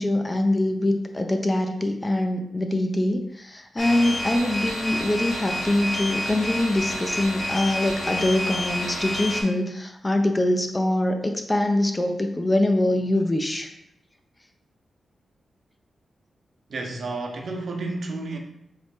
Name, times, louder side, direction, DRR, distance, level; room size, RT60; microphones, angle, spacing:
voice 1, 0.0-13.7, left 1 dB, 20° left, 6 dB, 0.4 m, -24 dB
sound 1, 3.8-9.4, left 1 dB, 75° left, 1.3 m, -29 dB
voice 2, 16.7-18.4, right 2 dB, 60° right, 2 dB, 0.6 m, -31 dB
4.1 x 3.0 x 3.5 m, 0.79 s
wide cardioid pair, 135°, 0 cm